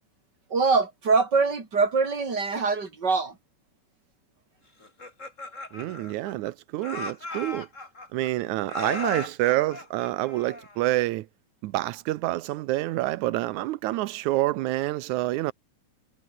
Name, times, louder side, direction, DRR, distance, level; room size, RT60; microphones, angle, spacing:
voice 1, 0.5-3.4, right 4 dB, 35° right, 4.4 m, -23 dB
Laughter, 4.8-6.5 6.8-8.3 8.7-10.9, left 2 dB, 25° left, 4.9 m, -37 dB
voice 2, 5.7-7.7 8.1-11.3 11.6-15.5, right 17 dB, 85° right, 2.2 m, -27 dB
omnidirectional pair, 3.3 m